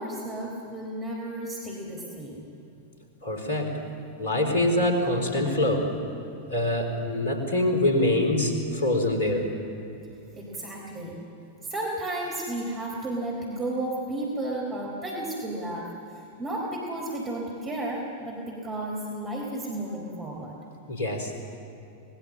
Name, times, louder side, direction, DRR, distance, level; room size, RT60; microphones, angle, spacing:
voice 1, 0.0-2.5 10.4-11.2 11.7-15.9 16.4-20.5, right 1 dB, 25° right, -2 dB, 4.0 m, -33 dB
voice 2, 3.2-3.7 4.2-5.9 6.5-9.5 20.9-21.3, left 1 dB, 60° left, 5 dB, 3.9 m, -24 dB
25.0 x 20.0 x 7.6 m, 2.9 s
figure-of-eight pair, 90°, 0 cm